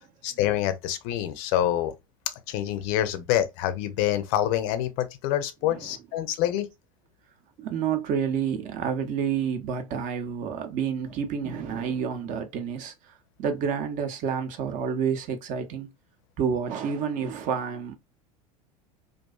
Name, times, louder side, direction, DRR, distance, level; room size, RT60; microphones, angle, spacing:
voice 1, 0.2-1.9 2.5-6.7, left 12 dB, 55° left, 0.5 m, -26 dB
voice 2, 5.6-6.0 7.6-15.9 16.4-17.9, right 7 dB, 45° right, 0.6 m, -29 dB
2.4 x 2.3 x 2.2 m
hypercardioid pair, 85°, 18 cm